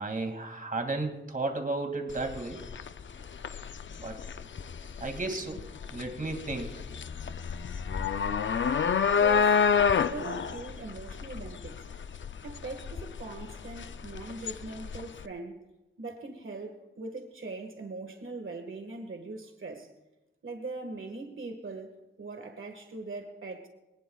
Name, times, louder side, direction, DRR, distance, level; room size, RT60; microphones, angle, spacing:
voice 1, 0.0-2.6 4.0-4.2 5.0-5.7 5.9-6.7, right 2 dB, 45° right, 2.3 m, -33 dB
sound 1, 2.1-15.2, left 6 dB, 70° left, 0.5 m, -29 dB
voice 2, 9.2-9.6 10.1-11.8 12.4-15.6 16.0-19.9 20.4-23.7, right 3 dB, 85° right, 1.7 m, -40 dB
24.5 x 19.0 x 2.4 m
wide cardioid pair, 105°, 20 cm